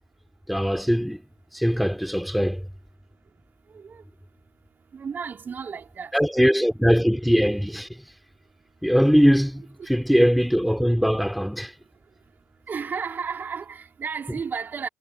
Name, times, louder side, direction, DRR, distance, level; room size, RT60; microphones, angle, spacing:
voice 1, 0.5-1.2 1.5-2.7 6.1-7.9 8.8-11.7, equal, ahead, 3.5 m, -21 dB
voice 2, 3.7-4.0 4.9-6.1 12.7-14.9, right 6 dB, 35° right, 2.3 m, -33 dB
figure-of-eight pair, 50°, 5 cm